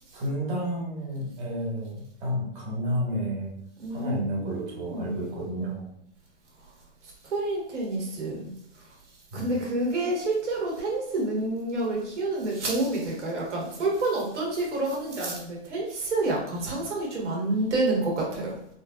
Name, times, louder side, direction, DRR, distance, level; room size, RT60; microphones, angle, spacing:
voice 1, 0.1-3.5 3.9-5.9 9.3-9.5, equal, 40° right, -4 dB, 1.5 m, -31 dB
voice 2, 3.8-5.5 6.6-6.7 7.0-8.5 8.7-8.9 9.3-18.6, right 2 dB, 85° right, -2 dB, 1.4 m, -29 dB
3.8 x 2.5 x 2.4 m, 0.74 s
hypercardioid pair, 145°, 35 cm